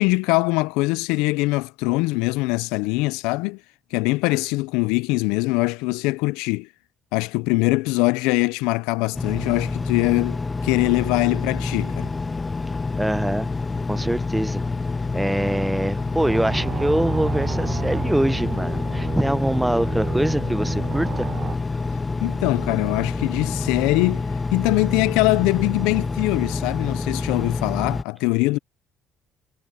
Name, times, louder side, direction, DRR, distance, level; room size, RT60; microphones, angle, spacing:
voice 1, 0.0-3.6 3.9-6.7 7.1-12.1 22.2-24.2 24.5-28.6, left 24 dB, 80° left, 0.6 m, -22 dB
Engine, 9.1-28.0, left 3 dB, 25° left, 0.4 m, -27 dB
voice 2, 13.0-13.5 13.9-14.6 15.1-21.3, right 1 dB, 10° right, 0.8 m, -24 dB
sound 1, 16.2-21.6, right 7 dB, 45° right, 0.6 m, -31 dB
hypercardioid pair, 60°, 0 cm